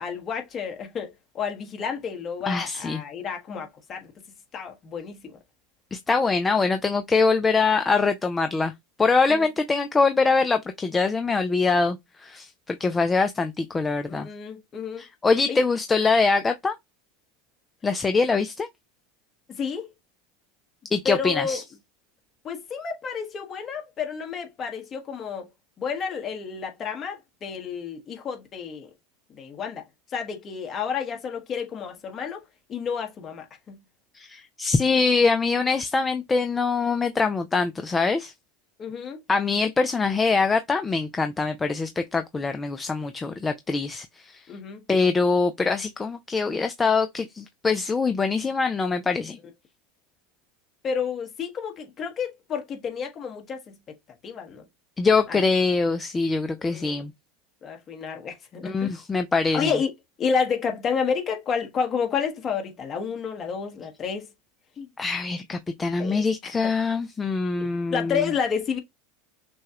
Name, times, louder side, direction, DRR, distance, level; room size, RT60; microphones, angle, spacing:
voice 1, 0.0-4.1 4.5-5.3 9.3-9.5 14.1-15.0 15.5-15.6 19.5-19.9 21.0-21.6 22.4-25.5 25.8-28.9 29.3-29.8 30.1-32.4 32.7-33.8 38.8-39.2 44.5-44.8 50.8-53.8 54.2-54.6 55.3-55.4 56.6-57.0 57.6-59.0 59.5-59.9 60.2-64.3 64.8-64.9 66.0-66.5 67.6-68.8, left 6 dB, 35° left, 1.4 m, -30 dB
voice 2, 2.5-3.0 5.9-8.7 9.0-14.3 15.0-16.8 17.8-18.7 20.9-21.6 34.1-38.3 39.3-44.4 44.9-49.4 55.0-57.1 58.6-59.7 65.0-68.3, left 4 dB, 20° left, 0.5 m, -23 dB
6.1 x 2.3 x 2.9 m
supercardioid pair, 110°, 0 cm